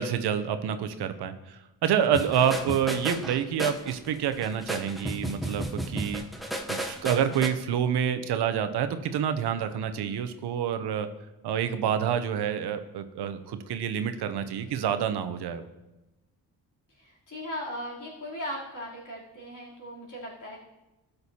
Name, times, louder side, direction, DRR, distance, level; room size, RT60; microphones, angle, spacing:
voice 1, 0.0-6.2 6.7-11.1 11.4-15.7, right 8 dB, 85° right, 10 dB, 0.7 m, -28 dB
sound 1, 2.1-7.5, right 1 dB, ahead, 0.8 m, -33 dB
voice 2, 16.9-20.6, equal, 50° left, -5 dB, 3.4 m, -38 dB
12.5 x 6.6 x 2.8 m, 1.0 s
cardioid pair, 85°, 39 cm